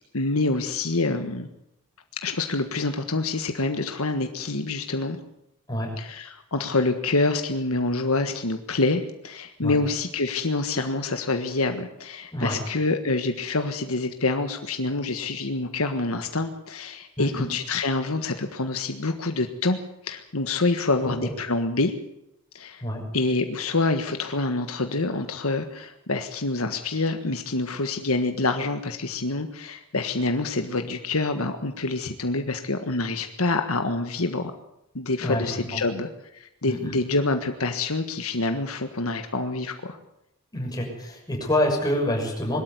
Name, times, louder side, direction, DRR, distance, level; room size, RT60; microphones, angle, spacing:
voice 1, 0.1-1.5 2.2-5.2 6.0-19.8 20.0-21.9 22.5-22.8 23.1-34.5 34.9-40.0, left 3 dB, 75° left, 6 dB, 1.5 m, -26 dB
voice 2, 17.2-17.5 21.0-21.3 22.8-23.0 35.2-35.5 35.7-35.8 36.6-37.0 40.5-42.6, left 1 dB, 20° left, -1 dB, 6.7 m, -27 dB
22.0 x 13.0 x 9.5 m, 0.83 s
head